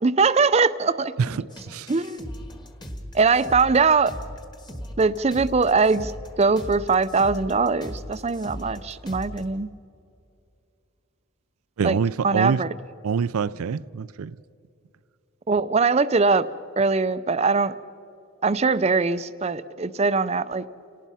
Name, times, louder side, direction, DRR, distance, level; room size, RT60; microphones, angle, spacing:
voice 1, 0.0-1.1 1.9-2.3 3.1-4.1 5.0-6.1 6.4-9.7 11.8-12.0 12.2-12.7 15.5-16.5 16.8-17.7 18.4-20.6, right 4 dB, 30° right, 0.5 m, -21 dB
voice 2, 1.2-1.9 11.8-12.6 13.0-14.4, right 6 dB, 85° right, 0.4 m, -25 dB
sound 1, 1.5-9.4, equal, 20° left, 1.6 m, -38 dB
29.5 x 18.5 x 5.6 m
head